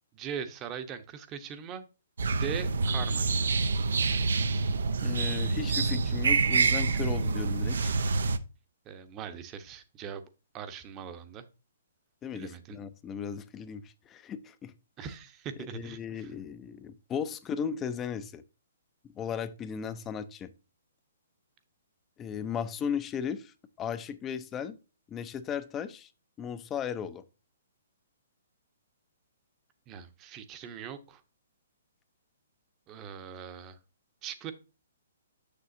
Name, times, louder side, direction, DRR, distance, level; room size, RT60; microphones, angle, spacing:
voice 1, 0.1-1.9 2.3-3.3 8.9-10.2 10.5-11.4 12.3-12.8 15.0-16.3 29.9-31.2 32.9-33.8 34.2-34.5, right 7 dB, 25° right, 0.9 m, -40 dB
sound 1, 2.2-8.4, right 4 dB, 70° right, 0.6 m, -27 dB
voice 2, 5.0-8.0 12.2-14.7 15.7-18.4 19.0-20.5 22.2-24.7 25.1-26.1 26.4-27.2, left 7 dB, 20° left, 0.6 m, -36 dB
7.0 x 6.7 x 2.6 m
hypercardioid pair, 130°, 0 cm